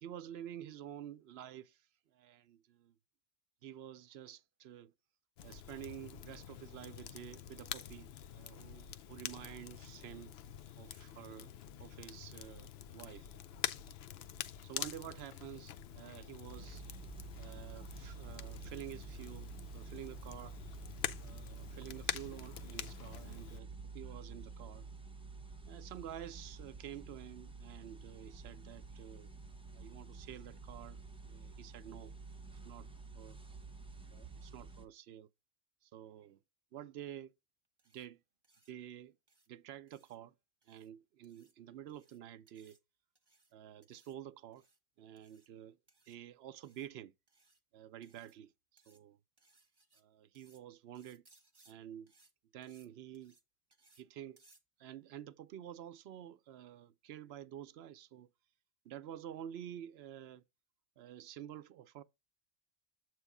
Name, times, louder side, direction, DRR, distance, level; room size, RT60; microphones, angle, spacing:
voice 1, 0.0-3.0 3.6-4.9 5.4-10.4 10.8-11.5 11.8-13.3 14.6-16.8 17.4-20.6 21.2-24.9 25.7-29.3 29.7-31.0 31.3-32.2 32.6-32.9 33.1-33.4 34.1-35.3 35.8-36.4 36.7-37.3 37.9-38.2 38.7-39.2 39.5-40.3 40.7-42.8 43.5-44.7 45.0-45.8 46.1-47.1 47.7-49.2 49.9-51.2 51.7-52.1 52.5-53.4 54.0-54.4 54.8-58.3 58.8-60.4 61.0-62.0, right 10 dB, 75° right, 0.8 m, -50 dB
Crackle, 5.4-23.6, left 10 dB, 70° left, 0.8 m, -46 dB
sound 1, 16.4-34.8, right 4 dB, 5° right, 0.8 m, -50 dB
sound 2, 37.8-38.1 38.4-38.7 39.3-39.5 39.9-40.2 40.6-40.9 41.2-41.5 41.9-42.2 42.5-42.8 43.1-43.5 43.8-44.2 44.5-44.8 45.2-45.5 45.9-46.2 46.6-46.9 47.3-47.6 48.0-48.4 48.8-49.0 49.4-50.0 50.3-50.6 50.9-51.7 52.1-52.3 52.6-52.9 53.1-53.4 53.7-54.0 54.4-54.6, right 2 dB, 25° right, 1.2 m, -69 dB
8.0 x 3.2 x 4.8 m
omnidirectional pair, 1.1 m